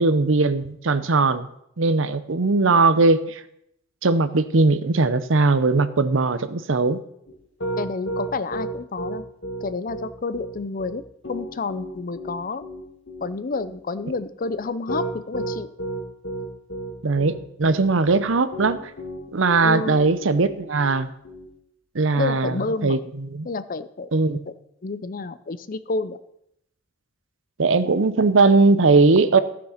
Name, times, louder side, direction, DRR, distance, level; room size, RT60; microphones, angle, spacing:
voice 1, 0.0-1.5 1.8-3.4 4.0-7.0 17.0-18.8 19.3-21.1 21.9-22.6 22.8-23.0 23.3-23.5 24.1-24.4 27.6-29.4, right 3 dB, 75° right, 13 dB, 0.7 m, -19 dB
Piano, 7.3-21.5, right 1 dB, 65° left, 1.9 m, -32 dB
voice 2, 7.8-9.2 9.6-11.0 11.3-12.6 13.2-15.7 19.6-20.1 22.2-23.0 23.4-24.1 24.5-24.6 24.8-26.2, left 3 dB, 45° left, 14 dB, 0.6 m, -29 dB
14.5 x 6.2 x 5.7 m, 0.77 s
head